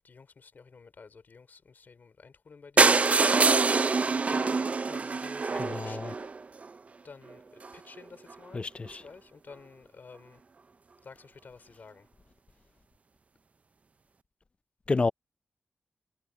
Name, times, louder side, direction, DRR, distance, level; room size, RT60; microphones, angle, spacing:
voice 1, 0.0-2.9 4.0-6.3 7.0-10.4 11.0-12.1, left 5 dB, 50° left, 4.1 m, -50 dB
sound 1, 2.8-6.7 7.3-7.4 7.6-7.8 8.0-8.1 8.3-8.4, right 4 dB, 35° right, 0.4 m, -24 dB
voice 2, 5.6-6.1 8.5-9.0 14.9-15.1, left 3 dB, 30° left, 0.4 m, -29 dB
wide cardioid pair, 145°, 4 cm